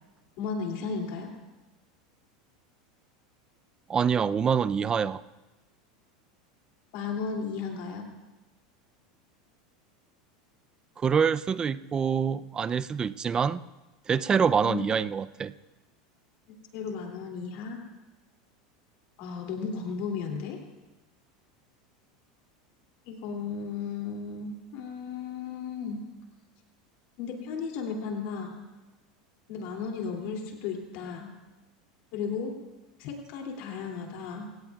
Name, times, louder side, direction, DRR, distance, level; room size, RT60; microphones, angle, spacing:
voice 1, 0.4-1.3 6.9-8.0 14.6-14.8 16.7-17.8 19.2-20.6 23.1-26.0 27.2-28.6 29.5-31.3 32.1-32.5 33.0-34.5, left 5 dB, 60° left, 1 dB, 2.7 m, -34 dB
voice 2, 3.9-5.2 11.0-13.6 14.1-15.5, right 6 dB, 20° right, 15 dB, 0.4 m, -26 dB
28.0 x 17.0 x 2.4 m, 1.1 s
supercardioid pair, 130°, 4 cm